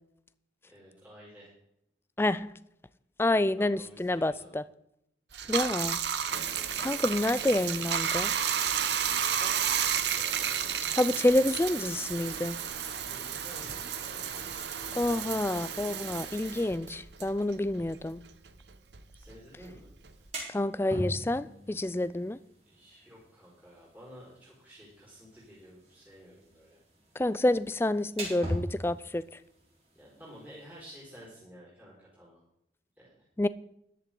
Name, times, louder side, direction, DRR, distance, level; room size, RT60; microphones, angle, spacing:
voice 1, 0.6-1.5 3.6-4.5 5.4-5.7 9.2-10.8 13.1-15.3 19.1-19.9 22.7-26.8 29.9-32.4 33.0-33.3, equal, 10° right, 4.5 m, -52 dB
voice 2, 2.2-2.5 3.2-4.6 5.5-6.0 6.8-8.3 11.0-12.6 15.0-18.2 20.5-22.4 27.2-29.2 33.4-33.5, left 1 dB, 15° left, 0.3 m, -28 dB
Bathtub (filling or washing), 5.3-18.1 18.5-20.3, right 8 dB, 75° right, 0.9 m, -32 dB
sound 1, 20.0-31.3, equal, 35° right, 3.9 m, -43 dB
14.0 x 11.0 x 3.8 m
head